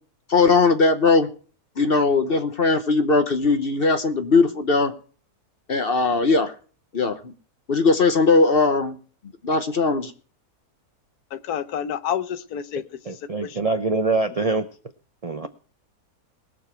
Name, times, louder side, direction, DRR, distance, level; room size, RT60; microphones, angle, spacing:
voice 1, 0.3-1.3 1.8-4.9 5.7-6.5 6.9-7.3 7.7-9.0 9.4-10.1, left 3 dB, 45° left, 1.0 m, -19 dB
voice 2, 11.3-12.8 13.4-13.6, left 9 dB, 80° left, 1.3 m, -28 dB
voice 3, 13.1-14.7 15.2-15.5, right 3 dB, 45° right, 0.5 m, -24 dB
20.5 x 7.0 x 4.5 m
omnidirectional pair, 1.6 m